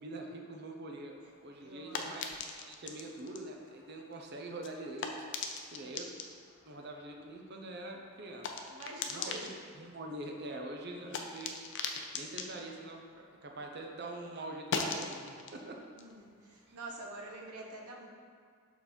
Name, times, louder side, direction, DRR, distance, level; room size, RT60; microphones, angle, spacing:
voice 1, 0.0-5.1 5.7-6.1 6.6-8.5 9.1-11.5 12.1-15.8 16.7-16.8, right 1 dB, 45° right, 1 dB, 0.7 m, -44 dB
sound 1, 1.1-13.9 14.2-17.4, left 4 dB, 55° left, 0.5 m, -43 dB
voice 2, 1.6-2.2 5.8-6.0 8.7-9.5 16.0-18.1, right 2 dB, 85° right, 0 dB, 1.0 m, -46 dB
6.8 x 4.0 x 4.4 m, 2.1 s
head